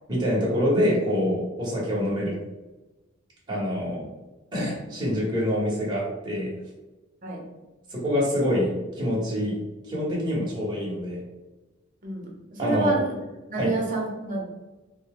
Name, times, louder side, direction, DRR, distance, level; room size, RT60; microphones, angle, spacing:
voice 1, 0.1-2.4 3.5-4.0 4.5-6.5 7.9-9.6 9.9-11.2 12.6-12.9 13.6-13.7, equal, 20° right, -6 dB, 1.3 m, -25 dB
voice 2, 12.0-13.1 13.5-14.4, right 3 dB, 45° right, -2 dB, 1.1 m, -29 dB
3.9 x 2.2 x 3.7 m, 1.1 s
head